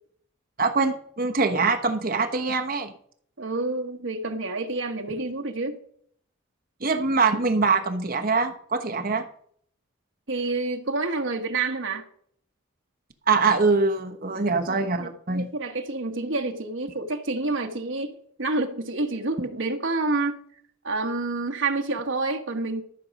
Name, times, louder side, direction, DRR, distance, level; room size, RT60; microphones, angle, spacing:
voice 1, 0.6-2.9 6.8-9.2 13.3-15.5, right 4 dB, 45° right, 1.1 m, -23 dB
voice 2, 3.4-5.8 10.3-12.0 14.3-18.1 18.4-20.4 20.8-22.8, right 3 dB, 65° right, 1.2 m, -28 dB
13.0 x 6.2 x 5.3 m
head